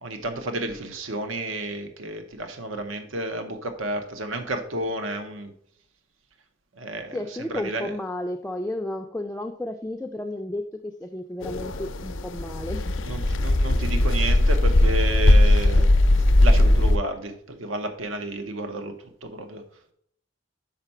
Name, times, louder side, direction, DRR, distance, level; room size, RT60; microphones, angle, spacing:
voice 1, 0.0-5.5 6.8-7.2 7.5-7.9 13.0-15.9 16.4-18.9 19.2-19.6, right 1 dB, 85° right, 0.8 m, -31 dB
voice 2, 7.1-12.9, left 1 dB, 5° left, 0.3 m, -32 dB
sound 1, 11.4-17.0, left 1 dB, 80° left, 0.6 m, -19 dB
5.8 x 5.2 x 5.5 m
head